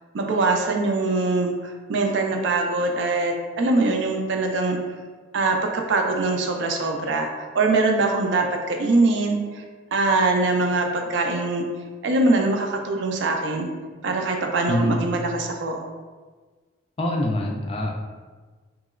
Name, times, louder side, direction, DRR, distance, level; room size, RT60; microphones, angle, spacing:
voice 1, 0.1-4.8 5.3-9.6 9.9-11.6 12.0-13.7 14.0-15.9, right 3 dB, 60° right, 3 dB, 0.4 m, -23 dB
voice 2, 17.0-17.9, left 1 dB, 30° left, 0 dB, 0.3 m, -24 dB
3.0 x 2.8 x 2.4 m, 1.4 s
head